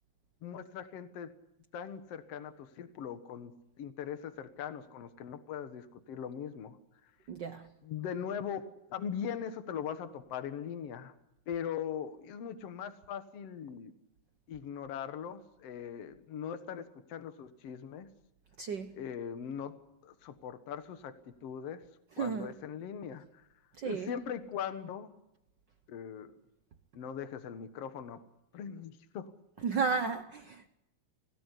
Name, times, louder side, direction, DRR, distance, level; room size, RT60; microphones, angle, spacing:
voice 1, 0.4-1.3 1.7-6.8 7.8-11.1 11.5-13.9 14.5-18.1 18.9-19.8 20.0-21.8 22.2-23.4 23.8-25.1 25.9-26.3 26.9-28.2 28.5-29.3, left 8 dB, 60° left, 2.3 m, -40 dB
voice 2, 7.3-7.7 18.6-19.0 22.2-22.5 23.8-24.1 29.6-30.7, right 5 dB, 70° right, 1.0 m, -33 dB
28.0 x 17.5 x 8.3 m
omnidirectional pair, 3.4 m